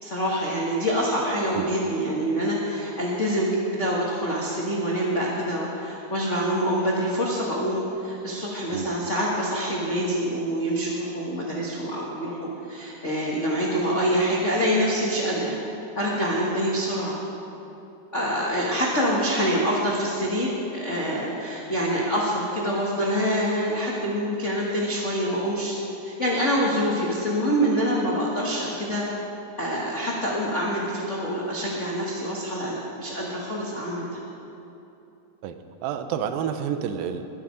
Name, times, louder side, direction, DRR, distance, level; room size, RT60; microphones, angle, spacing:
voice 1, 0.0-15.6 15.9-17.2 18.1-25.8 26.0-29.1 29.6-34.1, equal, 90° left, -5 dB, 0.6 m, -26 dB
voice 2, 35.8-37.2, right 8 dB, 90° right, 8 dB, 2.5 m, -29 dB
21.0 x 7.6 x 5.1 m, 2.9 s
omnidirectional pair, 4.0 m